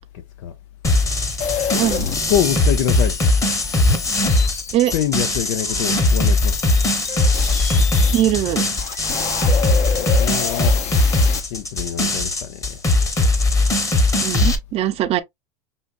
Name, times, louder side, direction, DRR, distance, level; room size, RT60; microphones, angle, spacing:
sound 1, 0.8-14.6, left 2 dB, 20° left, 1.2 m, -19 dB
sound 2, 1.4-8.2 8.7-11.4, left 8 dB, 45° left, 1.0 m, -29 dB
voice 1, 1.8-2.1 4.7-4.9 8.1-8.6 14.2-15.2, right 13 dB, 40° right, 0.6 m, -20 dB
voice 2, 2.3-3.2 4.9-6.6 10.0-10.8 11.5-12.8, left 10 dB, 70° left, 0.8 m, -24 dB
5.5 x 2.7 x 2.5 m
supercardioid pair, 115°, 16 cm